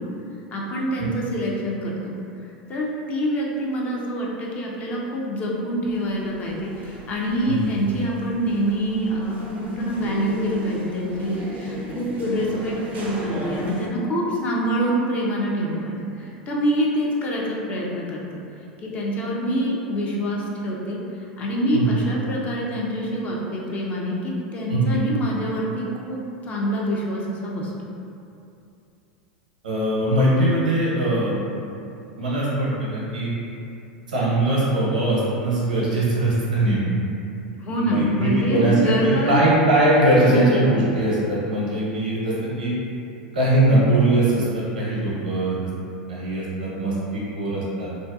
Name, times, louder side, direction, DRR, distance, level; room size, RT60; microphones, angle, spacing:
voice 1, 0.5-2.1 2.7-18.2 18.8-21.0 21.4-26.2 26.5-27.7 37.6-39.4 40.2-40.4, equal, 35° left, -4 dB, 0.5 m, -25 dB
sound 1, 5.8-13.9, right 1 dB, 35° right, 0.4 m, -37 dB
voice 2, 24.7-25.0 29.6-31.4 32.2-33.3 34.1-36.9 37.8-42.7 43.3-45.6 46.1-47.9, right 1 dB, 80° right, -7 dB, 0.7 m, -21 dB
2.5 x 2.2 x 2.3 m, 2.6 s
hypercardioid pair, 90°, 4 cm